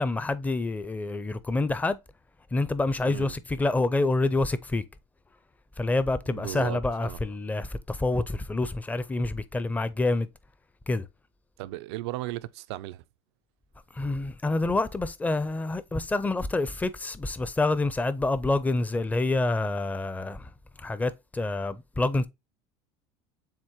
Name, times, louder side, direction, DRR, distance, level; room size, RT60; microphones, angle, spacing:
voice 1, 0.0-2.0 2.5-4.8 5.8-10.3 10.9-11.1 13.9-20.5 20.8-22.3, left 2 dB, 10° left, 0.5 m, -27 dB
voice 2, 6.3-7.2 11.6-13.0, right 16 dB, 80° right, 0.4 m, -36 dB
7.3 x 2.6 x 2.8 m
supercardioid pair, 115°, 14 cm